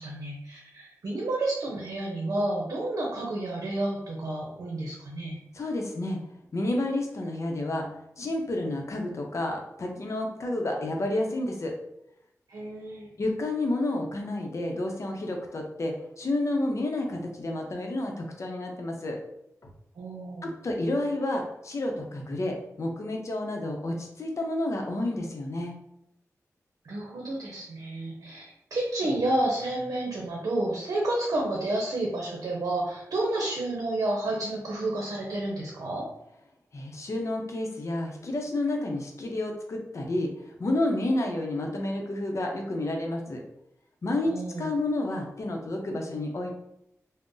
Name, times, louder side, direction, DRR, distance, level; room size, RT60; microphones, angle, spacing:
voice 1, 0.0-5.4 12.5-13.1 20.0-20.5 26.8-28.4 28.7-36.0 44.3-44.7, right 1 dB, 80° right, -2 dB, 0.6 m, -30 dB
voice 2, 5.5-6.2 6.5-7.9 8.2-11.7 13.2-19.2 20.4-25.7 36.7-43.4 44.0-44.3 44.6-46.5, left 1 dB, 55° left, 2 dB, 0.7 m, -30 dB
2.5 x 2.1 x 3.7 m, 0.79 s
cardioid pair, 60°, 6 cm